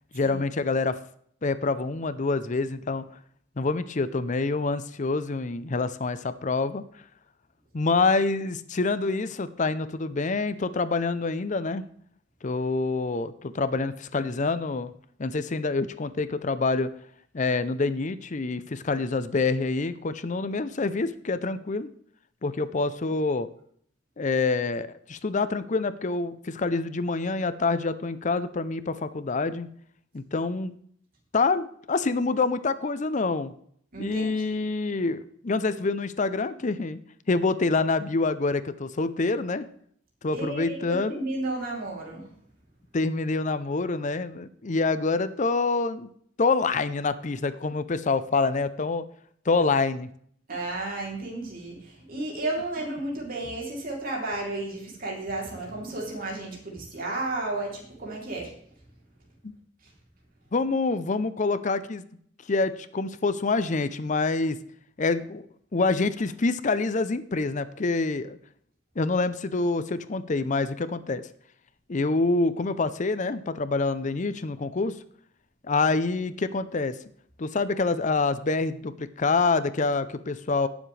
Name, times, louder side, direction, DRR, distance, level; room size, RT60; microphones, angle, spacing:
voice 1, 0.1-1.0 1.4-3.0 3.6-6.8 7.7-11.8 12.4-14.9 15.2-16.9 17.3-21.9 22.4-23.5 24.2-29.7 30.1-30.7 31.3-33.5 34.0-37.0 37.3-39.7 40.2-41.2 42.9-46.1 46.4-49.0 49.5-50.1 59.4-59.5 60.5-62.0 62.5-64.6 65.0-65.5 65.7-68.4 69.0-71.3 71.9-75.0 75.6-77.0 77.4-80.7, left 3 dB, 40° left, 13 dB, 0.6 m, -26 dB
voice 2, 33.9-34.3 40.3-42.3 50.5-58.5, right 2 dB, 50° right, -2 dB, 3.3 m, -33 dB
17.5 x 7.2 x 3.3 m, 0.62 s
head